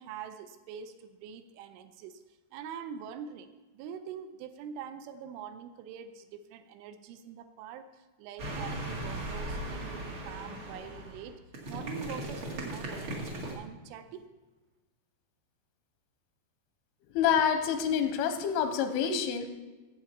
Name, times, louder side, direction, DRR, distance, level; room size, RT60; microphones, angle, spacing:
voice 1, 0.0-2.2 2.5-11.4 11.7-14.3, right 7 dB, 85° right, 9 dB, 2.9 m, -44 dB
sound 1, 8.4-13.5, right 1 dB, 60° right, 1.3 m, -38 dB
voice 2, 17.1-19.5, left 8 dB, 90° left, 7 dB, 3.2 m, -27 dB
15.0 x 7.7 x 4.4 m, 1.2 s
omnidirectional pair, 5.6 m